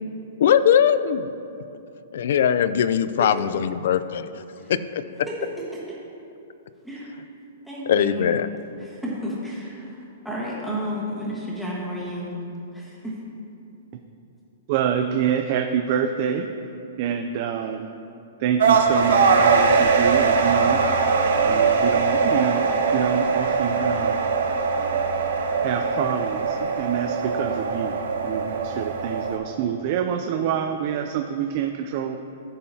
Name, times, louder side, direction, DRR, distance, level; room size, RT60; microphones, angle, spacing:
voice 1, 0.4-1.3 2.1-4.4 4.7-5.0 7.9-8.5, left 8 dB, 60° left, 14 dB, 0.3 m, -20 dB
voice 2, 7.6-8.3 8.8-12.3 12.7-13.2, equal, ahead, -6 dB, 1.3 m, -32 dB
voice 3, 14.7-16.5 17.0-17.9 18.4-20.8 21.4-24.2 25.6-28.0 28.2-32.2, right 8 dB, 35° right, 4 dB, 0.3 m, -26 dB
sound 1, 18.6-29.4, right 5 dB, 80° right, 0.9 m, -21 dB
14.0 x 5.6 x 2.8 m, 2.7 s
hypercardioid pair, 170°, 0 cm